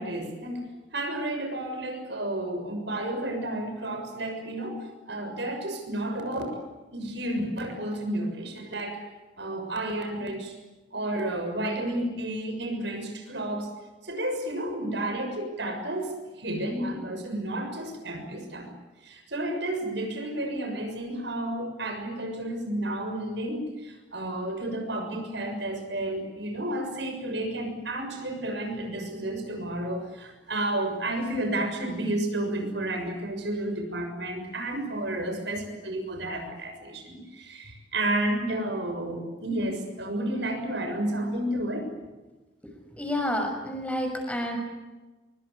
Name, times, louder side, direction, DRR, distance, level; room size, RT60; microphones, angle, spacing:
voice 1, 0.0-6.6 6.9-9.1 9.4-10.5 10.9-13.7 14.0-18.7 19.0-41.9, right 1 dB, 65° right, 5 dB, 6.7 m, -31 dB
voice 2, 43.0-44.6, left 1 dB, 5° left, 3 dB, 6.3 m, -29 dB
25.0 x 24.0 x 8.5 m, 1.1 s
head